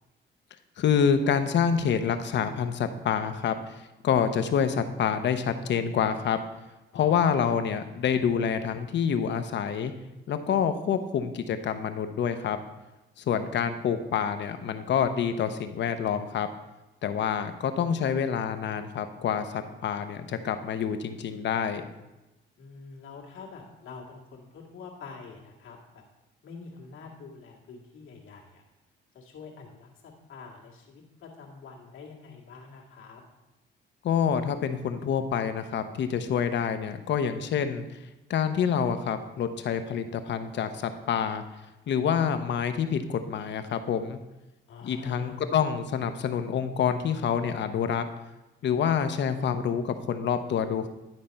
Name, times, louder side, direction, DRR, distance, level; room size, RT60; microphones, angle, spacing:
voice 1, 0.8-3.6 4.0-6.4 6.9-9.9 10.3-12.6 13.3-16.5 17.0-21.8 34.0-37.8 38.3-41.4 41.9-44.2 44.8-48.1 48.6-50.9, left 7 dB, 65° left, 9 dB, 0.8 m, -27 dB
voice 2, 6.9-7.5 13.3-13.5 22.6-26.0 26.4-28.6 29.1-33.2 44.7-45.4, left 4 dB, 85° left, -1 dB, 1.9 m, -46 dB
11.0 x 4.2 x 5.3 m, 1.0 s
cardioid pair, 90°, 20 cm